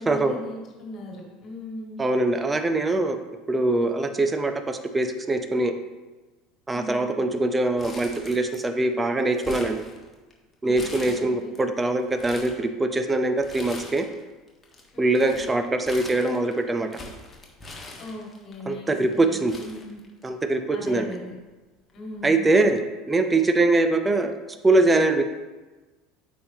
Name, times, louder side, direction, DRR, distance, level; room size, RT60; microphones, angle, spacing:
voice 1, 0.0-2.0 6.7-7.2 10.6-11.6 14.9-15.4 18.0-20.0 20.7-21.3 21.9-22.6, left 1 dB, 45° left, -2 dB, 2.2 m, -39 dB
voice 2, 2.0-3.2 3.5-5.7 6.7-9.8 10.6-14.0 15.0-17.0 18.7-19.5 20.2-21.1 22.2-22.8 23.1-24.3 24.6-25.2, right 2 dB, 20° right, 8 dB, 0.7 m, -23 dB
Crumpling crinkling, 7.8-8.8 9.1-10.3 10.7-11.6 12.0-12.6 13.4-14.2 14.5-18.5 19.1-19.2 19.5-20.5 20.8-20.9 21.9-22.1, left 2 dB, 25° left, 1.5 m, -42 dB
8.5 x 5.2 x 2.9 m, 1.2 s
hypercardioid pair, 70°, 0 cm